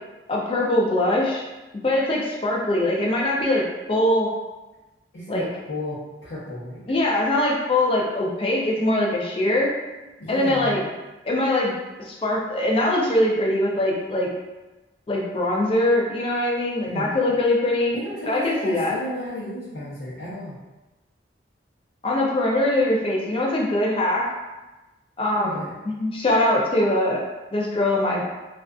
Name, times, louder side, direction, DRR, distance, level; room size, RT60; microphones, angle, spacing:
voice 1, 0.3-1.4 1.8-3.6 3.9-4.3 5.3-5.4 6.9-9.7 10.3-10.8 11.2-11.7 12.0-14.3 15.1-18.0 18.3-18.9 22.0-24.2 25.2-25.6 25.8-27.2 27.5-28.2, left 1 dB, 30° left, -3 dB, 0.4 m, -22 dB
voice 2, 5.1-6.8 10.2-10.8 16.8-17.1 17.9-20.6 25.3-25.7, left 1 dB, 90° left, -11 dB, 0.7 m, -33 dB
2.4 x 2.3 x 2.3 m, 1.1 s
head